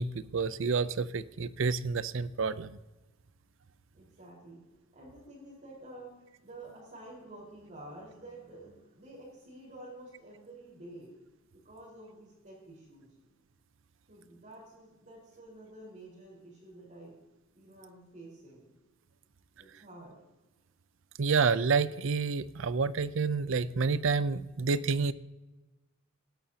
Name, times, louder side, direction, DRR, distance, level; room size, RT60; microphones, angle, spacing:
voice 1, 0.0-2.8 21.2-25.1, right 5 dB, 60° right, 16 dB, 0.5 m, -29 dB
voice 2, 3.9-4.6 4.9-6.1 6.4-11.1 11.5-13.1 14.1-17.1 17.5-18.7 19.5-20.1, right 1 dB, 40° right, -8 dB, 4.4 m, -50 dB
19.0 x 11.5 x 2.8 m, 1.1 s
head